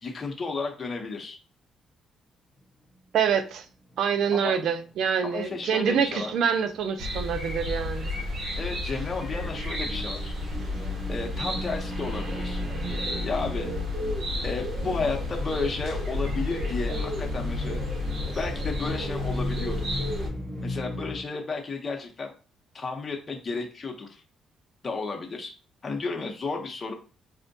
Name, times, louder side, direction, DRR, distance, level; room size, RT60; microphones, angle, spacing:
voice 1, 0.0-1.4 4.3-4.6 5.2-6.3 8.6-10.3 11.1-12.6 13.2-13.7 14.4-17.8 18.4-19.9 20.6-22.3 22.7-24.2 24.8-25.5 25.8-26.9, left 4 dB, 35° left, 0.6 m, -32 dB
voice 2, 3.1-3.7 4.0-8.2, right 7 dB, 75° right, 0.4 m, -26 dB
sound 1, 3.9-4.0 4.5-4.6 4.9-21.2, equal, 20° right, 1.1 m, -38 dB
sound 2, 7.0-20.3, left 2 dB, 55° right, 1.0 m, -31 dB
4.2 x 2.1 x 2.6 m
cardioid pair, 90°, 0 cm